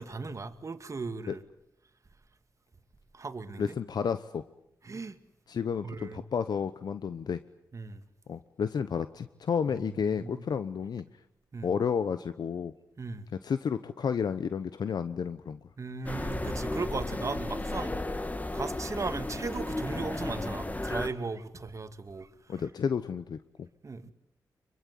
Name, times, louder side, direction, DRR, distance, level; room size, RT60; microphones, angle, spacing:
voice 1, 0.0-1.4 3.1-3.8 4.8-5.2 5.8-6.2 7.7-8.0 10.1-10.4 11.5-11.7 13.0-13.3 15.8-18.0 18.5-22.6 23.8-24.1, right 4 dB, 45° right, 2.2 m, -37 dB
voice 2, 3.6-4.4 5.5-7.4 8.3-11.1 11.6-12.7 13.4-15.6 22.5-23.7, left 6 dB, 65° left, 1.0 m, -31 dB
sound 1, 16.1-21.1, left 2 dB, 20° left, 2.0 m, -34 dB
25.0 x 23.0 x 9.5 m
cardioid pair, 55°, 7 cm